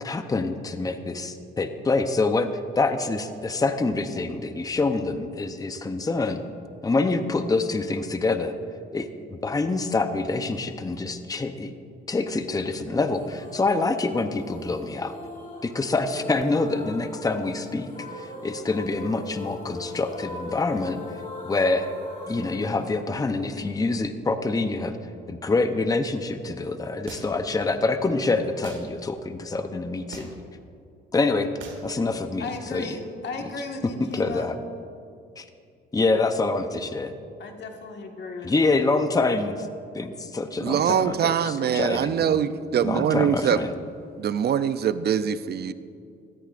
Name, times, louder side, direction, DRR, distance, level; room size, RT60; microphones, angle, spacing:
voice 1, 0.0-6.4 6.8-8.5 8.9-11.7 12.1-15.2 15.6-21.0 21.4-21.9 22.3-25.0 25.3-30.3 31.1-31.5 31.8-32.9 33.8-34.6 35.4-35.5 35.9-37.1 38.4-39.7 39.9-42.4 42.8-43.7, left 3 dB, 20° left, 8 dB, 0.7 m, -26 dB
sound 1, 13.1-24.1, left 2 dB, 40° left, 3.1 m, -40 dB
sound 2, 27.1-27.5 28.6-28.9 30.1-30.5 31.6-31.9, right 4 dB, 75° right, 2.0 m, -41 dB
voice 2, 32.4-34.5 37.4-38.8, left 3 dB, 60° left, 3 dB, 1.6 m, -36 dB
voice 3, 40.6-43.6 44.2-45.7, right 8 dB, 55° right, 13 dB, 0.5 m, -23 dB
17.5 x 14.0 x 2.5 m, 2.4 s
cardioid pair, 90°, 20 cm